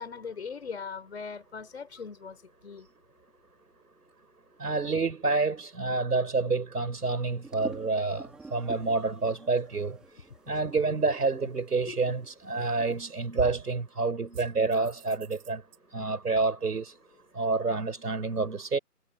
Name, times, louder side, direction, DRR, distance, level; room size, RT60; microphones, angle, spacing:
voice 1, 0.0-2.9 11.9-12.0, left 5 dB, 40° left, 5.5 m, -40 dB
voice 2, 4.6-10.0 10.5-15.6 15.9-16.9 17.3-18.8, right 3 dB, 70° right, 5.1 m, -28 dB
sound 1, 7.4-10.9 11.2-11.3 11.5-12.9, right 3 dB, ahead, 3.7 m, -48 dB
sound 2, 12.6-13.0 13.4-13.8 14.3-15.8, right 8 dB, 30° right, 7.8 m, -40 dB
hypercardioid pair, 170°, 48 cm